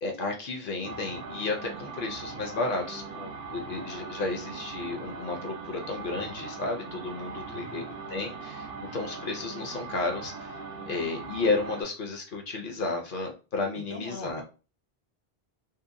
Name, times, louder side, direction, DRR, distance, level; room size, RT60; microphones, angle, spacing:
voice 1, 0.0-7.8 8.1-8.7 8.9-10.5 10.8-14.4, left 3 dB, 60° left, 2 dB, 0.7 m, -32 dB
sound 1, 0.8-11.8, right 4 dB, 70° right, 0.8 m, -40 dB
voice 2, 7.4-8.4 13.7-14.4, left 1 dB, 35° right, -1 dB, 0.6 m, -43 dB
2.7 x 2.1 x 2.5 m, 0.33 s
omnidirectional pair, 1.0 m